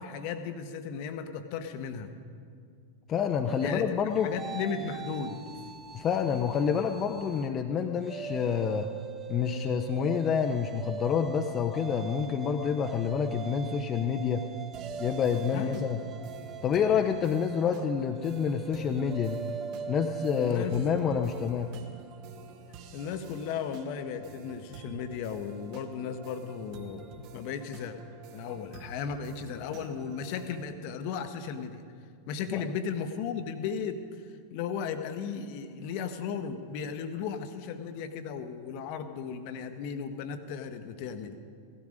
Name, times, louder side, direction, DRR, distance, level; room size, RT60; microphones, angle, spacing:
voice 1, 0.0-2.1 3.6-5.4 15.5-15.9 20.3-20.8 22.9-28.0 28.3-31.8 32.3-34.0 34.5-41.4, left 6 dB, 45° left, 9 dB, 1.0 m, -35 dB
voice 2, 3.1-4.3 5.9-8.9 9.3-14.4 15.0-16.0 16.6-19.4 19.9-21.7 32.5-32.6, left 7 dB, 30° left, 5 dB, 0.7 m, -28 dB
sound 1, 3.5-7.5 7.9-21.5, right 6 dB, 20° right, 0.8 m, -41 dB
sound 2, 14.7-30.7, right 6 dB, 45° right, 1.3 m, -50 dB
17.0 x 13.0 x 5.1 m, 2.3 s
figure-of-eight pair, 90°, 0 cm